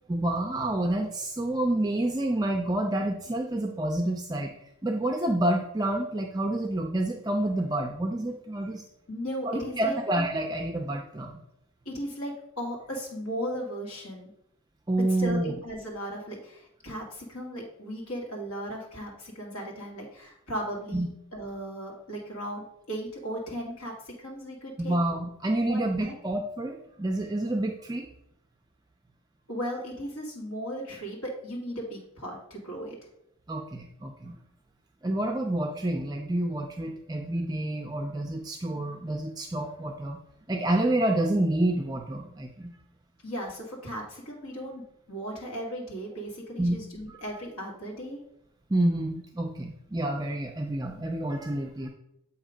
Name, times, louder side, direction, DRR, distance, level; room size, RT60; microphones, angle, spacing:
voice 1, 0.1-4.5 4.8-8.8 9.5-11.4 14.9-15.5 20.9-21.1 24.8-28.1 33.5-34.4 35.0-40.2 40.5-42.7 46.6-46.8 47.1-47.2 48.7-51.9, right 1 dB, 15° right, 2 dB, 0.4 m, -28 dB
voice 2, 9.1-10.0 11.9-14.3 15.2-25.0 25.6-26.1 29.5-33.0 43.2-44.8 45.1-48.2, equal, 80° left, -1 dB, 1.9 m, -36 dB
7.4 x 2.9 x 5.0 m, 0.77 s
head